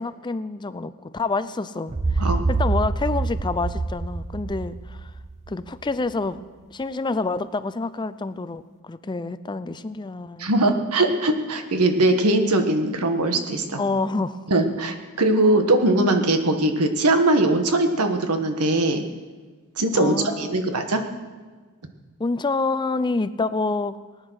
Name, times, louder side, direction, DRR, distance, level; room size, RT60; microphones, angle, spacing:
voice 1, 0.0-5.1 5.5-6.4 6.7-10.5 13.8-14.4 19.9-20.8 22.2-24.0, left 3 dB, 20° left, 14 dB, 0.4 m, -27 dB
sound 1, 1.9-5.8, right 3 dB, 30° right, 0.7 m, -26 dB
voice 2, 10.4-13.8 14.5-19.0 19.8-21.0, right 2 dB, 90° right, 6 dB, 1.5 m, -21 dB
19.0 x 9.7 x 6.4 m, 1.4 s
head